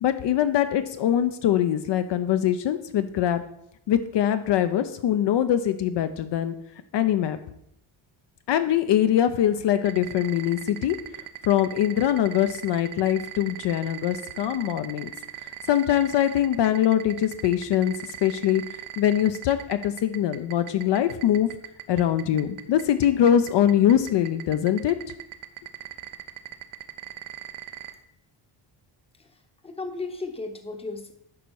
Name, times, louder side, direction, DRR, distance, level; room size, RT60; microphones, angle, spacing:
voice 1, 0.0-3.4 3.9-6.5 6.9-7.4 8.5-11.0 11.4-15.1 15.7-18.6 19.0-21.5 21.9-25.0, left 10 dB, 60° left, 9 dB, 0.6 m, -23 dB
sound 1, 9.9-27.9, right 14 dB, 80° right, 0.8 m, -38 dB
voice 2, 29.2-31.1, left 3 dB, 10° left, 6 dB, 0.8 m, -35 dB
11.0 x 4.0 x 4.6 m, 0.74 s
cardioid pair, 130°, 48 cm